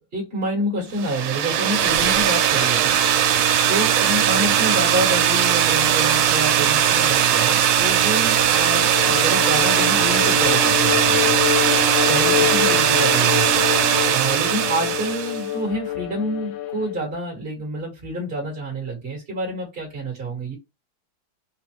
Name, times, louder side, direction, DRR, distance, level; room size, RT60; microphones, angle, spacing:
voice 1, 0.0-3.0 3.7-11.3 12.0-13.6 14.1-20.6, right 1 dB, 30° right, 1.6 m, -28 dB
sound 1, 1.0-15.4, right 9 dB, 85° right, 1.5 m, -19 dB
Bowed string instrument, 8.6-17.0, left 11 dB, 75° left, 1.6 m, -26 dB
4.8 x 2.4 x 3.1 m
omnidirectional pair, 2.3 m